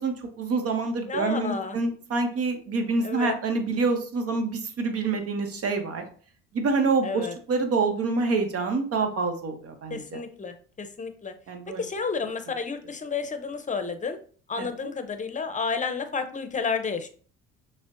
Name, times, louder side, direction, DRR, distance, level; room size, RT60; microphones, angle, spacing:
voice 1, 0.0-6.0 6.5-10.0 11.5-11.8 14.6-14.7, right 4 dB, 55° right, 6 dB, 0.9 m, -26 dB
voice 2, 1.1-1.8 3.0-3.4 7.0-7.3 9.9-11.3 11.8-14.2 14.5-17.1, left 5 dB, 25° left, 8 dB, 0.7 m, -31 dB
6.1 x 2.2 x 2.5 m, 0.43 s
hypercardioid pair, 60°, 29 cm